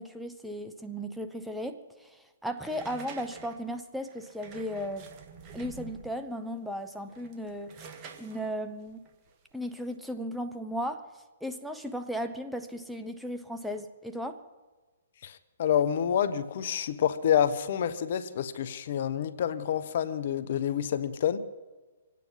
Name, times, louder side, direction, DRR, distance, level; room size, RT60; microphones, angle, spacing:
voice 1, 0.0-5.1 5.5-9.0 9.5-11.0 11.4-14.4, equal, ahead, 0.9 m, -36 dB
sound 1, 2.6-6.3 7.0-9.9, right 5 dB, 30° right, 1.7 m, -48 dB
voice 2, 15.2-21.4, left 9 dB, 55° left, 0.9 m, -28 dB
25.5 x 9.3 x 5.7 m
hypercardioid pair, 130°, 0 cm